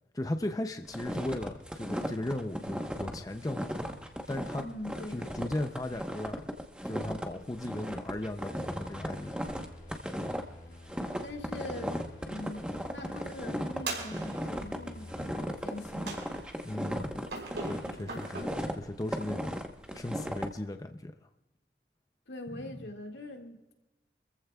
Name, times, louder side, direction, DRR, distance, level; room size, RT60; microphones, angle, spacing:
voice 1, 0.1-3.7 4.3-4.7 5.1-6.5 6.8-9.5 16.6-17.3 17.7-18.5 18.7-19.5 19.9-21.1 22.5-22.9, left 1 dB, 20° left, 6 dB, 0.5 m, -36 dB
sound 1, 0.9-20.5, equal, 5° right, 1.0 m, -36 dB
voice 2, 4.6-5.5 11.2-12.0 12.2-16.3 22.3-23.7, left 1 dB, 85° left, 2 dB, 2.0 m, -43 dB
sound 2, 8.5-16.2, left 1 dB, 45° left, 1.6 m, -51 dB
sound 3, 13.9-14.7 16.1-16.7 17.3-18.4, right 3 dB, 85° right, 5.0 m, -39 dB
26.5 x 14.5 x 2.3 m, 1.0 s
head